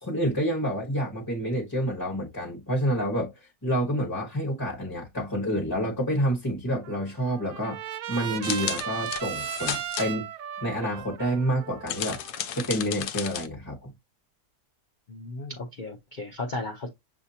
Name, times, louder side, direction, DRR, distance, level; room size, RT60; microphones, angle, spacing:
voice 1, 0.0-3.3 3.6-7.8 8.1-10.3 10.6-12.2 12.5-13.9, equal, 15° left, 0.9 m, -28 dB
Trumpet, 6.8-13.0, right 10 dB, 70° right, 0.8 m, -36 dB
sound 1, 8.4-10.1 11.9-13.5, left 10 dB, 75° left, 1.1 m, -33 dB
voice 2, 15.1-16.9, left 2 dB, 50° left, 0.5 m, -35 dB
6.8 x 2.8 x 2.7 m
omnidirectional pair, 1.9 m